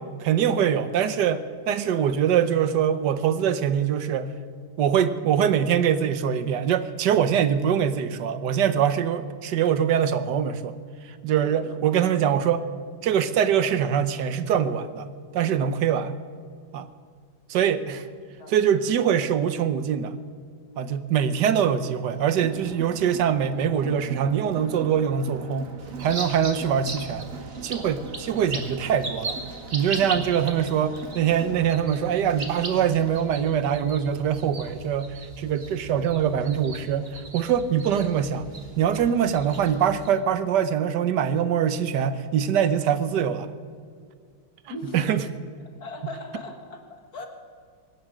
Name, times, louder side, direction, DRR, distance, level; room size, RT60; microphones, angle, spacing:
voice 1, 0.2-4.3 4.8-10.8 11.2-12.7 13.0-15.1 15.3-16.1 16.7-16.9 17.5-18.1 18.5-20.2 20.8-25.7 26.0-27.2 27.6-29.4 29.7-37.1 37.3-43.5 44.9-45.2, right 8 dB, 65° right, 12 dB, 1.3 m, -23 dB
Crowd, 22.1-33.7, right 4 dB, 45° right, 1.4 m, -43 dB
sound 1, 25.8-40.1, right 2 dB, 30° right, 1.8 m, -39 dB
voice 2, 44.7-45.1 45.8-47.3, left 2 dB, 50° left, 4 dB, 2.1 m, -39 dB
23.5 x 10.0 x 6.1 m, 2.1 s
omnidirectional pair, 2.2 m